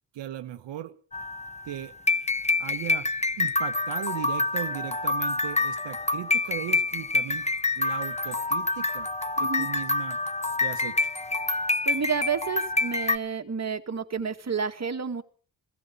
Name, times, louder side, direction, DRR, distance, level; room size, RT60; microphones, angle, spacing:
voice 1, 0.1-1.0 1.6-1.9 2.6-3.1 3.4-7.5 7.8-9.1 9.4-10.2 10.6-11.1, right 12 dB, 80° right, 9 dB, 1.0 m, -37 dB
sound 1, 1.1-13.2, left 3 dB, 15° left, 1.2 m, -27 dB
voice 2, 9.4-9.7 11.9-15.2, right 6 dB, 40° right, 6 dB, 2.0 m, -30 dB
17.5 x 14.0 x 5.4 m, 0.42 s
cardioid pair, 60°, 42 cm